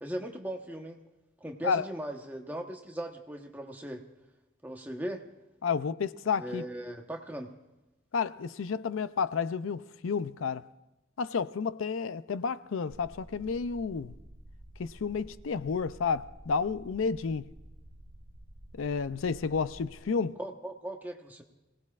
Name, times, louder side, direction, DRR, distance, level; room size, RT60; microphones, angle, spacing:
voice 1, 0.0-1.0 1.4-4.0 4.6-5.2 6.4-7.5 20.4-21.4, right 1 dB, 10° right, 1.1 m, -38 dB
voice 2, 5.6-6.6 8.1-10.6 11.2-14.1 14.8-17.5 18.7-20.4, left 5 dB, 90° left, 0.5 m, -31 dB
sound 1, 12.9-20.0, right 1 dB, 60° right, 2.0 m, -51 dB
27.0 x 17.5 x 2.5 m
head